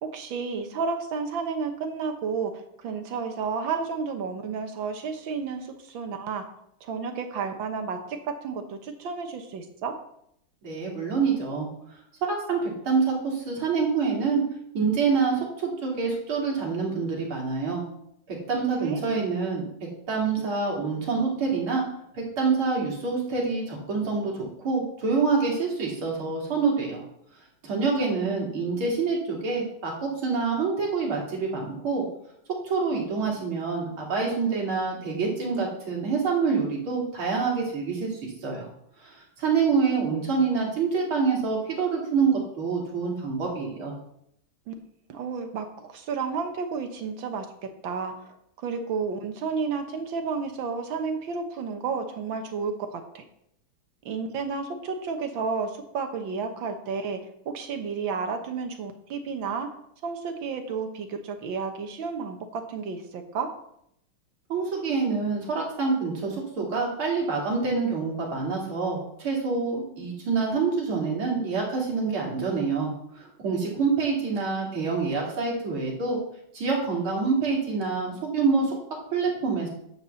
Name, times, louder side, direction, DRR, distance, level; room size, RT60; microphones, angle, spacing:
voice 1, 0.0-6.4 6.8-10.0 18.7-19.0 27.8-28.5 44.7-44.8 45.1-48.4 48.6-53.2 54.0-59.7 60.0-63.5, right 5 dB, 70° right, 6 dB, 1.8 m, -32 dB
voice 2, 10.6-11.7 12.3-14.4 14.7-17.8 18.3-19.7 20.1-21.8 22.1-27.0 27.6-32.0 32.6-38.7 39.0-43.9 64.5-76.2 76.5-78.7 79.1-79.7, right 4 dB, 85° right, -2 dB, 3.6 m, -26 dB
10.5 x 4.8 x 6.9 m, 0.74 s
omnidirectional pair, 2.2 m